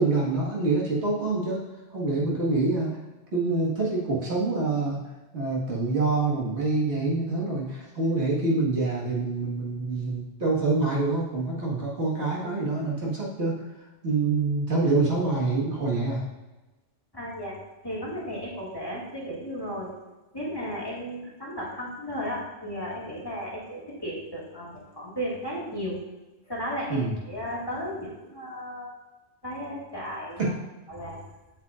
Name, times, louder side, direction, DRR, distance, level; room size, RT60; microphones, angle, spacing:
voice 1, 0.0-1.6 1.9-2.9 3.3-5.0 5.3-13.5 14.0-16.2 26.9-27.1 30.4-30.5, right 3 dB, 70° right, -5 dB, 2.0 m, -26 dB
voice 2, 17.1-17.5 17.8-19.9 20.3-26.0 26.5-28.9 29.4-30.5 30.9-31.2, equal, 20° left, -5 dB, 2.0 m, -34 dB
8.0 x 7.8 x 2.5 m, 1.1 s
omnidirectional pair, 1.2 m